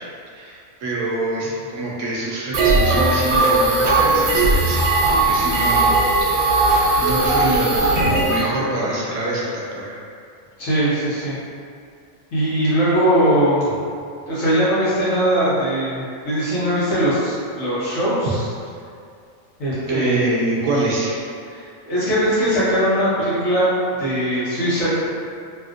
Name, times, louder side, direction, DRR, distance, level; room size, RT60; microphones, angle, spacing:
voice 1, 0.3-5.9 6.2-6.3 7.0-10.0 19.9-21.2, right 2 dB, 70° right, -5 dB, 0.9 m, -25 dB
sound 1, 2.5-8.4, right 2 dB, 90° right, 1.1 m, -18 dB
voice 2, 10.6-11.4 12.3-13.8 14.3-18.5 19.6-20.3 21.5-23.7 24.0-24.9, equal, 75° left, -12 dB, 1.6 m, -20 dB
3.4 x 2.5 x 2.4 m, 2.3 s
omnidirectional pair, 1.4 m